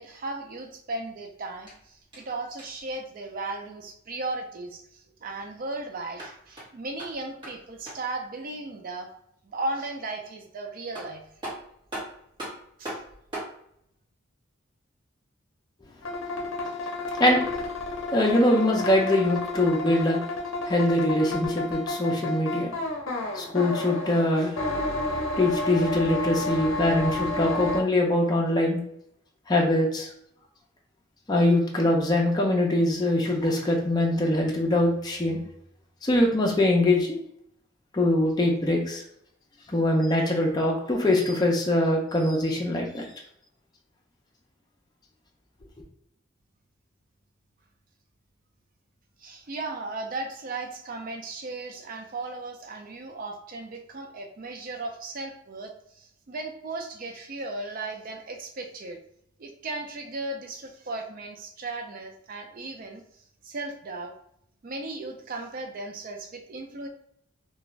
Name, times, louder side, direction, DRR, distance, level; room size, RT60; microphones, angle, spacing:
voice 1, 0.0-9.1 9.4-11.2 12.8-13.0 49.2-59.0 59.4-63.0 63.4-64.1 64.6-66.9, right 2 dB, 45° right, 3 dB, 0.4 m, -36 dB
sound 1, 1.6-2.9 6.0-8.2 10.5-10.6 10.9-13.6, right 1 dB, 25° right, 1.2 m, -40 dB
sound 2, 16.0-27.8, left 2 dB, 75° left, 0.6 m, -31 dB
voice 2, 18.1-20.2 20.6-22.7 23.3-24.6 25.4-28.8 29.5-30.1 31.3-35.4 36.0-37.2 37.9-39.0 39.7-43.0, left 1 dB, 20° left, -1 dB, 0.5 m, -23 dB
2.4 x 2.2 x 3.1 m, 0.71 s
head